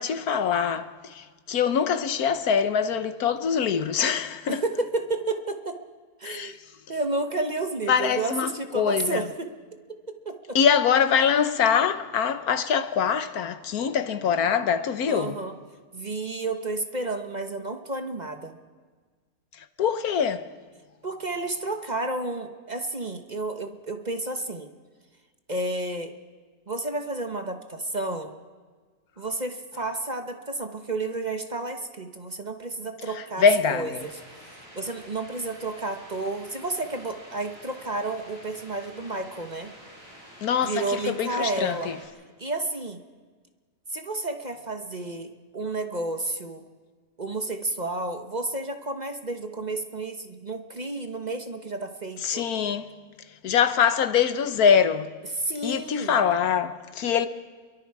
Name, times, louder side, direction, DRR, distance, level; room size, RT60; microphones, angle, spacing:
voice 1, 0.0-4.6 6.2-6.5 7.9-9.2 10.5-15.4 19.8-20.4 33.4-34.1 40.4-42.0 52.2-52.9 53.4-55.1 55.6-57.3, left 7 dB, 80° left, 1.5 m, -24 dB
voice 2, 4.5-5.8 6.2-6.6 6.9-9.5 10.1-10.6 15.1-15.5 15.9-18.6 21.0-24.7 25.5-26.1 26.7-28.3 29.2-33.4 33.7-34.1 34.7-39.7 40.6-41.9 42.4-43.0 43.9-46.6 47.2-52.5 55.3-56.2, right 2 dB, 30° right, 1.2 m, -31 dB
sound 1, 33.9-42.1, equal, 15° right, 7.7 m, -48 dB
29.5 x 22.5 x 4.8 m
omnidirectional pair, 1.6 m